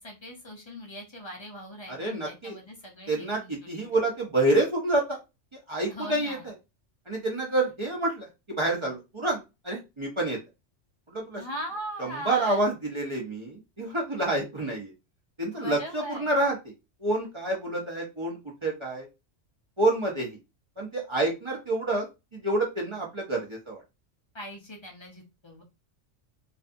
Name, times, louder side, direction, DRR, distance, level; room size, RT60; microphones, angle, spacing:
voice 1, 0.0-3.9 5.9-6.4 11.4-12.6 15.5-16.3 24.3-25.6, equal, 40° left, 0 dB, 0.4 m, -40 dB
voice 2, 1.9-2.6 3.1-5.2 5.5-6.5 7.1-10.4 11.1-11.4 12.0-14.9 15.4-16.7 17.0-19.1 19.8-20.4 20.8-22.1 22.3-23.8, right 2 dB, 35° right, -3 dB, 0.5 m, -28 dB
2.5 x 2.3 x 2.5 m, 0.25 s
omnidirectional pair, 1.3 m